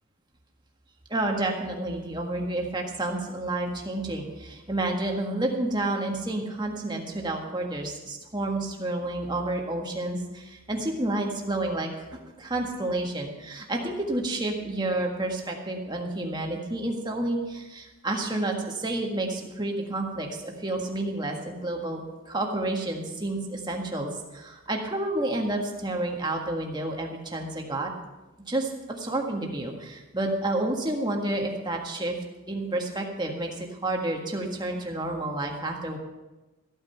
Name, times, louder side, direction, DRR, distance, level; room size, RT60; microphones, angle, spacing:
voice 1, 1.1-27.9 28.5-32.2 32.5-36.0, right 2 dB, 20° right, 1 dB, 1.6 m, -30 dB
14.5 x 8.9 x 5.7 m, 1.1 s
head